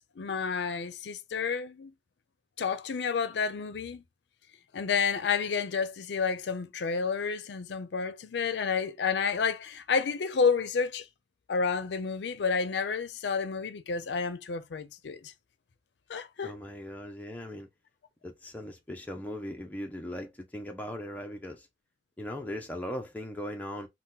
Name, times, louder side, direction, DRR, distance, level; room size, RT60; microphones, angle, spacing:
voice 1, 0.2-1.9 2.6-4.0 4.7-11.0 11.5-15.3 16.1-16.6, left 5 dB, 75° left, 0.4 m, -30 dB
voice 2, 16.4-17.7 18.2-21.7 22.2-23.9, equal, 10° left, 0.4 m, -39 dB
2.8 x 2.1 x 3.5 m
head